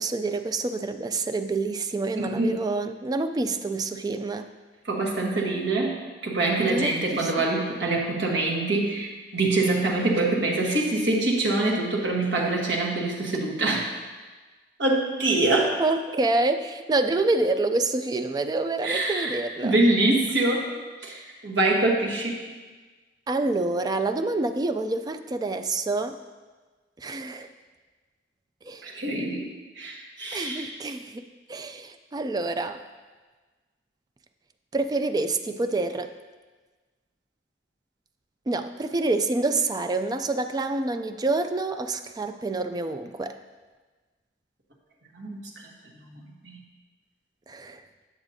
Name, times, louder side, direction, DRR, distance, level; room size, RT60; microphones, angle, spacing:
voice 1, 0.0-4.5 6.6-7.5 15.8-19.8 23.3-26.2 27.0-27.5 28.6-28.9 30.3-32.8 34.7-36.1 38.5-43.4 47.5-47.8, right 2 dB, 20° right, 8 dB, 0.3 m, -27 dB
voice 2, 2.2-2.5 4.8-6.0 6.2-13.8 14.8-15.8 18.8-20.7 21.0-22.5 28.8-29.5 29.8-30.8 45.1-45.5 46.1-46.6, right 2 dB, 75° right, -1 dB, 1.2 m, -25 dB
8.7 x 7.1 x 2.7 m, 1.3 s
head